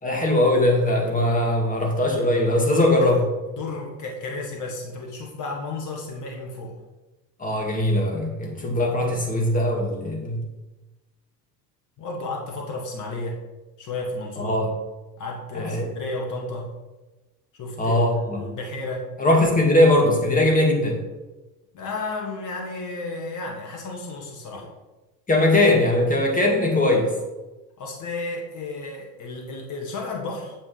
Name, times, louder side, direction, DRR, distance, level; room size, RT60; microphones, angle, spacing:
voice 1, 0.0-3.3 7.4-10.5 14.4-14.7 15.5-15.8 17.8-18.4 19.2-21.0 25.3-27.1, left 1 dB, 15° left, 0 dB, 2.1 m, -20 dB
voice 2, 2.7-3.2 3.5-6.8 12.0-13.4 13.8-14.6 15.2-16.7 17.5-19.1 21.7-24.7 27.8-30.5, left 2 dB, 35° left, 0 dB, 1.7 m, -33 dB
8.8 x 7.4 x 3.4 m, 1.1 s
figure-of-eight pair, 70°, 50 cm